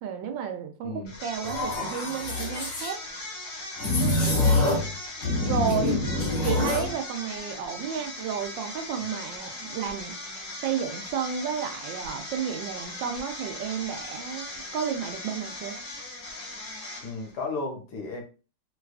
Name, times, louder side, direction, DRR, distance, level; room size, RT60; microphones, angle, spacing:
voice 1, 0.0-3.0 4.0-4.8 5.4-6.0 6.4-10.2 10.6-15.8, right 7 dB, 85° right, 6 dB, 1.3 m, -32 dB
voice 2, 0.8-1.1 4.4-4.9 17.0-18.2, left 3 dB, 70° left, 2 dB, 1.2 m, -34 dB
sound 1, 1.1-17.4, left 2 dB, 85° left, 2.0 m, -39 dB
sound 2, 1.4-2.9 3.8-4.9 5.2-6.9, left 2 dB, 40° left, 0.7 m, -25 dB
4.6 x 2.3 x 2.4 m, 0.34 s
omnidirectional pair, 2.0 m